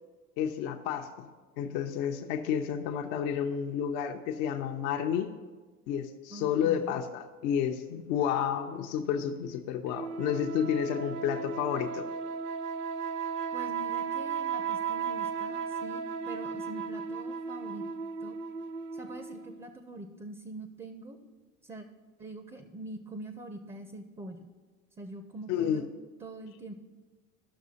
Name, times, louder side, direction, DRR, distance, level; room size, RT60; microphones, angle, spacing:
voice 1, 0.4-1.3 1.6-5.3 5.9-12.1 25.5-25.8, left 8 dB, 65° left, 4 dB, 0.7 m, -31 dB
voice 2, 6.3-7.0 13.5-17.8 18.2-18.4 18.9-21.2 21.6-21.9 22.2-24.5 25.0-25.9 26.2-26.7, right 2 dB, 15° right, 8 dB, 0.6 m, -44 dB
sound 1, 9.9-19.6, right 6 dB, 55° right, 0.8 m, -35 dB
14.0 x 6.0 x 2.8 m, 1.4 s
hypercardioid pair, 75°, 42 cm